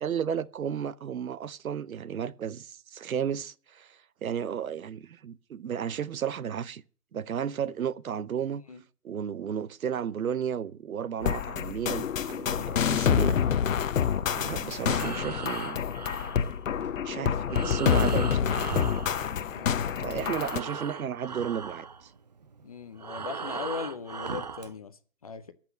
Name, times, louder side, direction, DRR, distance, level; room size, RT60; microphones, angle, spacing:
voice 1, 0.0-6.8 7.1-8.6 9.0-13.4 13.7-13.8 14.3-15.8 16.1-16.3 17.0-18.5 20.0-22.1, right 8 dB, 65° right, 0.8 m, -33 dB
sound 1, 11.2-20.6, left 8 dB, 55° left, 0.9 m, -27 dB
voice 2, 14.6-15.0 15.5-15.6 19.4-20.8 22.6-25.5, left 6 dB, 25° left, 0.6 m, -41 dB
Breathing, 14.8-19.8 20.1-24.7, right 5 dB, 30° right, 0.5 m, -38 dB
14.0 x 6.1 x 8.6 m
figure-of-eight pair, 140°, 46 cm